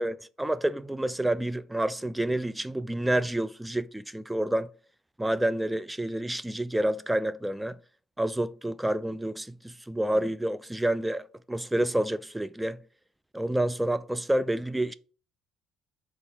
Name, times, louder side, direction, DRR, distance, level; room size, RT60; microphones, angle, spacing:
voice 1, 0.0-4.7 5.2-7.8 8.2-12.8 13.3-14.9, right 1 dB, 10° right, 0.5 m, -28 dB
5.4 x 3.9 x 6.0 m
hypercardioid pair, 55°, 0 cm